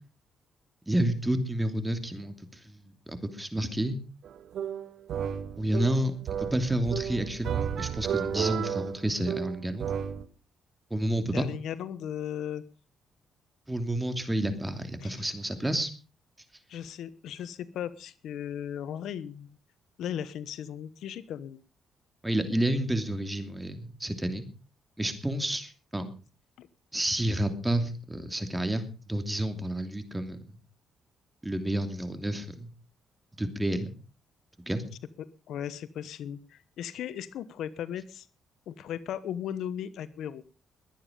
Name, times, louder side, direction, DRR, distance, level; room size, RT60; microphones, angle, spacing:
voice 1, 0.9-4.0 5.6-6.1 6.4-9.9 10.9-11.4 13.7-15.9 22.2-24.4 25.0-26.1 26.9-30.6 31.4-32.7 33.4-33.9 34.7-34.8, right 1 dB, 10° right, 8 dB, 2.8 m, -30 dB
sound 1, 4.2-10.2, right 8 dB, 70° right, 1.1 m, -33 dB
voice 2, 11.3-12.6 15.0-15.2 16.7-19.6 20.0-21.6 26.6-26.7 35.2-38.3 38.7-40.4, left 9 dB, 75° left, 15 dB, 1.0 m, -37 dB
21.5 x 9.4 x 5.3 m, 0.36 s
cardioid pair, 90°, 0 cm